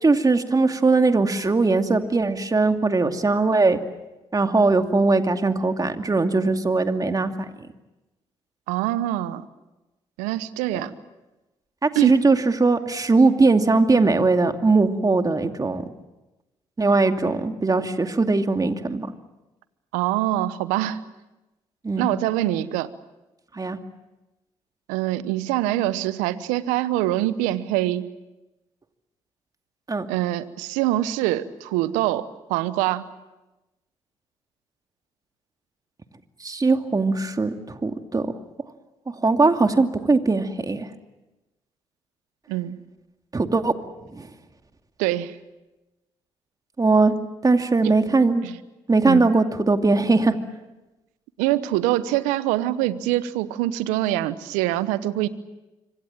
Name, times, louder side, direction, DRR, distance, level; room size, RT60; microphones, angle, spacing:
voice 1, 0.0-3.8 4.3-7.3 11.8-15.8 16.8-19.1 21.8-22.1 23.5-23.8 29.9-30.1 36.4-38.3 39.2-40.9 43.3-43.7 44.1-44.3 46.8-47.1 47.4-48.4 48.9-50.3, right 3 dB, 30° right, 6 dB, 2.5 m, -20 dB
voice 2, 8.7-9.4 10.2-10.9 11.9-12.2 19.9-21.0 22.0-22.9 24.9-28.1 30.1-33.1 42.5-42.8 45.0-45.4 47.8-47.9 48.4-48.6 49.1-49.3 51.4-55.3, right 14 dB, 80° right, 15 dB, 1.0 m, -24 dB
26.5 x 25.0 x 7.4 m, 1.0 s
hypercardioid pair, 45°, 13 cm